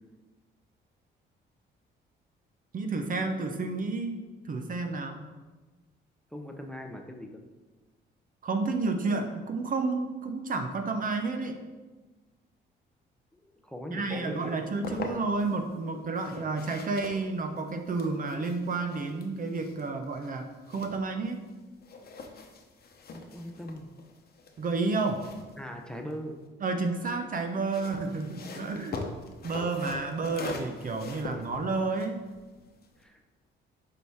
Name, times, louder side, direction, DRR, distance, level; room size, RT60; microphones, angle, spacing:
voice 1, 2.7-5.2 8.4-11.6 13.9-21.4 24.6-25.2 26.6-29.0 29.4-32.2, right 3 dB, 45° right, 6 dB, 0.7 m, -31 dB
voice 2, 6.3-7.4 13.3-14.6 23.1-23.9 25.6-26.4 33.0-33.2, equal, 5° left, 3 dB, 0.7 m, -40 dB
sound 1, 14.4-15.6 16.1-21.5 21.8-26.5 27.5-33.0, left 3 dB, 50° left, 0.9 m, -43 dB
6.8 x 4.8 x 3.5 m, 1.3 s
cardioid pair, 90°, 20 cm